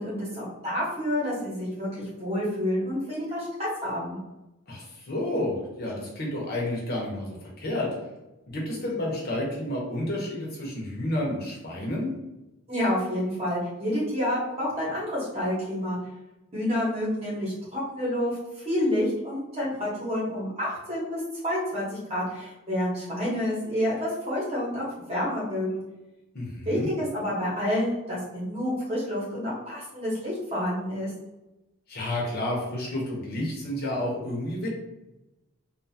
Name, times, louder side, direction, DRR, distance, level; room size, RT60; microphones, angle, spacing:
voice 1, 0.0-4.2 12.7-16.0 16.5-25.8 26.7-31.1, left 1 dB, 25° right, -6 dB, 1.0 m, -29 dB
voice 2, 4.7-7.9 8.5-12.1 26.3-26.9 31.9-34.7, left 1 dB, 45° left, -3 dB, 0.8 m, -30 dB
2.6 x 2.4 x 2.7 m, 0.98 s
head